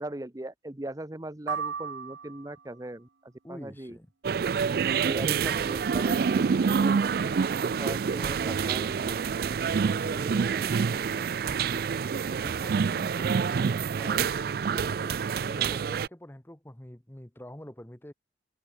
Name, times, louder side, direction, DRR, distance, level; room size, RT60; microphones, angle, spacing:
voice 1, 0.0-3.1 3.5-4.0 5.1-6.5 6.8-9.2, right 1 dB, 20° right, 0.8 m, -39 dB
sound 1, 1.5-2.8, right 6 dB, 85° right, 0.8 m, -35 dB
voice 2, 3.4-4.1 4.9-5.4 6.6-6.8 9.8-11.8 12.4-13.7 14.0-18.1, left 1 dB, 10° left, 0.9 m, -45 dB
sound 2, 4.2-16.1, right 6 dB, 55° right, 0.3 m, -27 dB
head